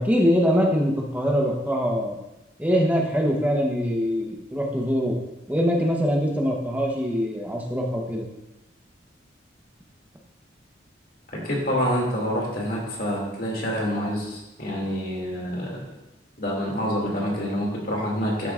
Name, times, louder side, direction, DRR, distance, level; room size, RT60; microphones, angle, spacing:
voice 1, 0.0-2.1 2.6-5.1 5.5-8.3, equal, 10° right, -1 dB, 1.0 m, -23 dB
voice 2, 11.3-15.9 16.4-18.5, equal, 50° left, -2 dB, 2.5 m, -27 dB
13.0 x 7.7 x 2.5 m, 0.96 s
head